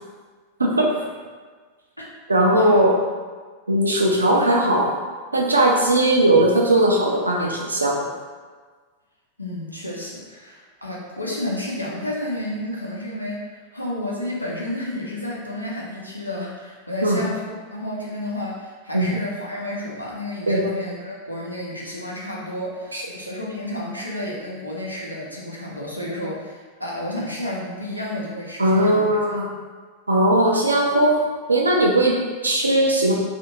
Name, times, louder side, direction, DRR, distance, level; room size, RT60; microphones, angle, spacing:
voice 1, 0.6-1.1 2.3-3.0 3.7-4.9 5.3-8.1 17.0-17.2 18.9-19.1 20.5-20.6 22.9-23.0 28.6-29.5 30.1-31.2 31.5-33.1, right 1 dB, 80° right, -1 dB, 0.5 m, -18 dB
voice 2, 9.4-29.1, left 1 dB, 90° left, -4 dB, 0.6 m, -31 dB
2.7 x 2.4 x 2.9 m, 1.5 s
figure-of-eight pair, 90°, 0 cm